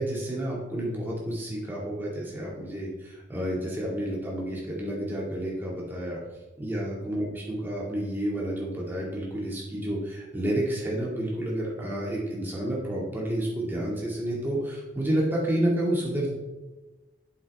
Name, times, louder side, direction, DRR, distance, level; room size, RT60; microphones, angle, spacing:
voice 1, 0.0-6.2 6.6-16.3, right 1 dB, 10° right, -4 dB, 1.9 m, -30 dB
8.7 x 7.7 x 3.4 m, 1.1 s
head